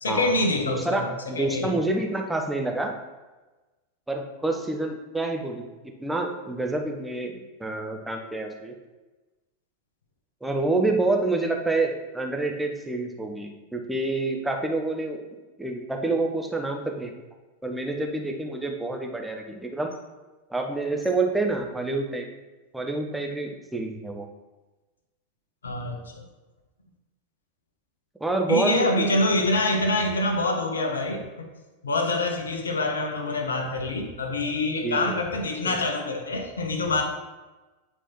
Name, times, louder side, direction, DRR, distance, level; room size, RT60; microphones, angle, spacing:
voice 1, 0.0-1.8 25.6-26.2 28.5-31.5 31.8-37.0, left 2 dB, 70° left, 5 dB, 0.9 m, -26 dB
voice 2, 0.7-2.9 4.1-5.7 6.0-8.7 10.4-15.2 15.6-17.1 17.6-19.9 20.5-22.2 22.7-24.3 28.2-29.1 34.8-35.0 35.6-35.8, right 2 dB, 5° right, 2 dB, 0.8 m, -27 dB
8.9 x 4.5 x 3.0 m, 1.2 s
figure-of-eight pair, 90°, 0 cm